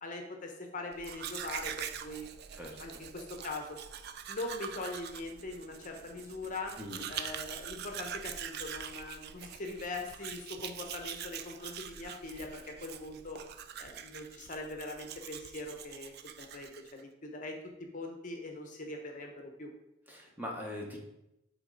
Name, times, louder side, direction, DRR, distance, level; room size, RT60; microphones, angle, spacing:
voice 1, 0.0-2.3 2.8-3.8 4.3-6.8 7.1-13.4 13.8-19.7, left 2 dB, 40° left, 3 dB, 0.8 m, -42 dB
Domestic sounds home sounds, 0.9-17.0, right 9 dB, 55° right, 0.4 m, -44 dB
voice 2, 6.8-7.1 20.1-21.0, left 1 dB, 10° right, -1 dB, 1.0 m, -41 dB
8.5 x 3.8 x 3.9 m, 0.89 s
head